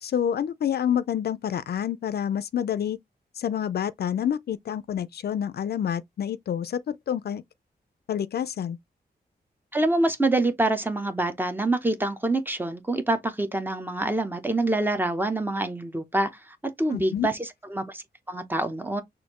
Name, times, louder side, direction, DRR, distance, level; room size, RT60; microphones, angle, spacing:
voice 1, 0.0-3.0 3.4-7.4 8.1-8.8 16.9-17.3, left 9 dB, 65° left, 0.4 m, -28 dB
voice 2, 9.7-19.0, right 2 dB, 10° right, 0.7 m, -26 dB
6.2 x 2.6 x 2.9 m
wide cardioid pair, 170°, 17 cm